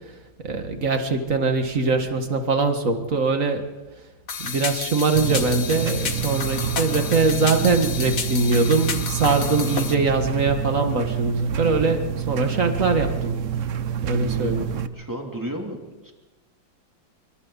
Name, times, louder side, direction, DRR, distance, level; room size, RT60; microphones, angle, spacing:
voice 1, 0.4-3.7 4.4-13.4 14.0-14.7, right 3 dB, 40° right, 6 dB, 2.0 m, -22 dB
sound 1, 4.3-9.9, left 6 dB, 45° left, 1.6 m, -30 dB
sound 2, 5.1-14.9, right 8 dB, 85° right, 0.6 m, -28 dB
voice 2, 14.1-16.1, right 1 dB, 10° right, 0 dB, 2.8 m, -34 dB
26.5 x 24.0 x 4.1 m, 1.2 s
omnidirectional pair, 2.4 m